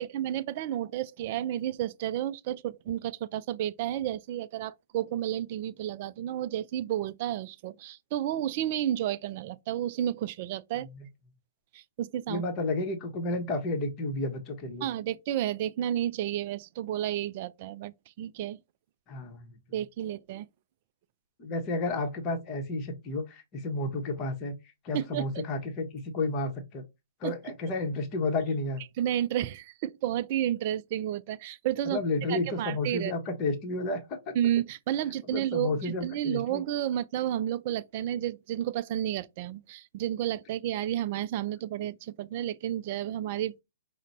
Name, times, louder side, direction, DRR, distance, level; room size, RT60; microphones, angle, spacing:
voice 1, 0.0-10.9 11.7-12.4 14.8-18.6 19.7-20.5 24.9-25.3 27.2-27.3 29.0-32.0 32.3-33.1 34.3-43.6, right 11 dB, 40° right, 0.3 m, -31 dB
voice 2, 12.3-14.9 19.1-19.5 21.4-24.5 24.8-26.8 27.2-28.8 31.9-34.3 35.3-36.6, left 2 dB, 25° left, 0.9 m, -31 dB
5.0 x 2.1 x 3.8 m
figure-of-eight pair, 120°, 0 cm